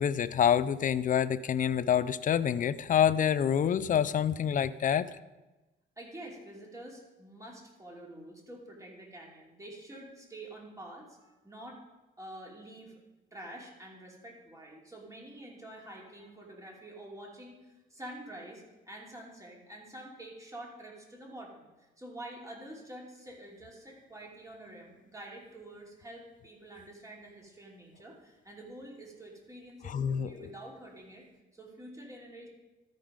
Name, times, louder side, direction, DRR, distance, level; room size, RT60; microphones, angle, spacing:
voice 1, 0.0-5.1 29.8-30.5, left 9 dB, 40° left, 16 dB, 0.5 m, -27 dB
voice 2, 6.0-11.8 12.2-13.0 13.3-21.7 22.0-31.2 31.5-32.5, right 1 dB, 15° right, -2 dB, 2.8 m, -47 dB
13.0 x 5.2 x 5.1 m, 1.1 s
cardioid pair, 90°, 20 cm